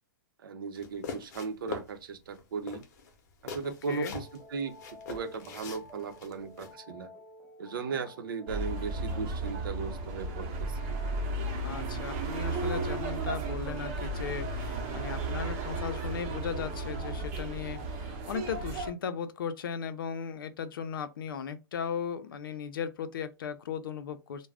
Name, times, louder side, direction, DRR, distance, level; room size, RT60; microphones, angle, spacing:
voice 1, 0.4-2.8 3.4-4.8 5.1-7.1 7.6-10.8, right 5 dB, 85° right, 0.7 m, -37 dB
sound 1, 0.8-1.9 2.3-2.4 2.7-4.4 4.8-6.7, left 5 dB, 50° left, 0.7 m, -42 dB
voice 2, 3.6-4.2 11.6-24.5, left 7 dB, 90° left, 0.5 m, -37 dB
sound 2, 3.9-18.2, left 2 dB, 5° right, 0.5 m, -52 dB
sound 3, 8.5-18.9, right 2 dB, 40° right, 0.7 m, -34 dB
2.4 x 2.1 x 3.3 m
hypercardioid pair, 160°, 11 cm